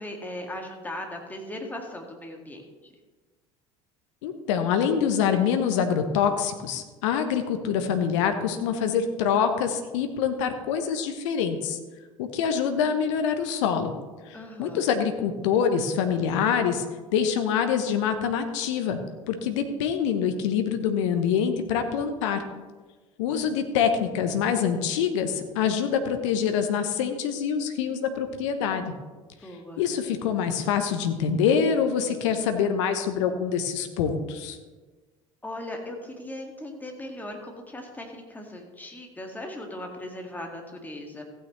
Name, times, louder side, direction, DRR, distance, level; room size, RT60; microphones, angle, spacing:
voice 1, 0.0-2.9 14.3-14.9 29.4-29.8 35.4-41.2, left 1 dB, 10° left, 2 dB, 2.0 m, -38 dB
voice 2, 4.2-11.8 12.2-13.9 14.3-16.8 17.1-19.0 19.3-22.4 23.2-28.9 29.8-34.6, left 7 dB, 65° left, 7 dB, 1.0 m, -25 dB
15.0 x 9.1 x 3.2 m, 1.3 s
figure-of-eight pair, 65°, 17 cm